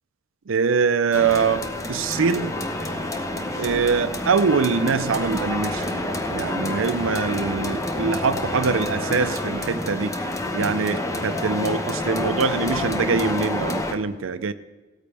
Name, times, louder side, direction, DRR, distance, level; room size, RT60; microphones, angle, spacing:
voice 1, 0.5-2.6 3.6-5.9 6.3-10.1 10.5-14.5, right 5 dB, 75° right, 11 dB, 0.5 m, -23 dB
sound 1, 1.1-13.9, left 1 dB, 15° left, 0.9 m, -28 dB
sound 2, 2.1-11.4, right 1 dB, 15° right, 2.0 m, -37 dB
17.0 x 13.5 x 3.4 m, 1.3 s
head